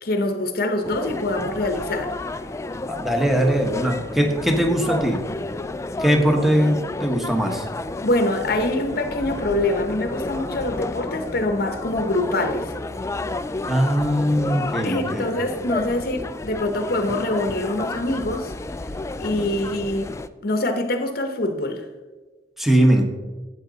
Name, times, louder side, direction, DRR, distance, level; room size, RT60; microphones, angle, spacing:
voice 1, 0.0-2.1 8.0-12.7 14.8-18.5 19.2-20.1 20.4-21.9, left 1 dB, 55° left, 6 dB, 0.8 m, -24 dB
sound 1, 0.8-20.3, left 2 dB, 15° left, 0.3 m, -31 dB
voice 2, 2.9-5.2 6.0-7.7 13.6-15.3 22.6-23.0, right 1 dB, ahead, 3 dB, 1.2 m, -20 dB
12.0 x 8.3 x 4.0 m, 1.3 s
head